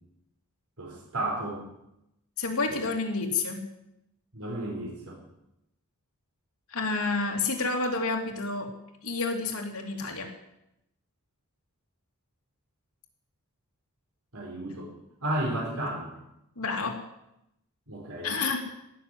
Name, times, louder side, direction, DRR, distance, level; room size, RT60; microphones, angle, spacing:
voice 1, 0.8-1.6 2.7-2.8 4.3-5.2 14.3-14.9 15.2-16.1 17.9-18.3, right 1 dB, 75° right, -2 dB, 4.3 m, -33 dB
voice 2, 2.4-3.6 6.7-8.7 9.0-10.3 16.6-17.0 18.2-18.6, left 3 dB, 80° left, 2 dB, 2.8 m, -29 dB
17.0 x 7.1 x 9.8 m, 0.85 s
head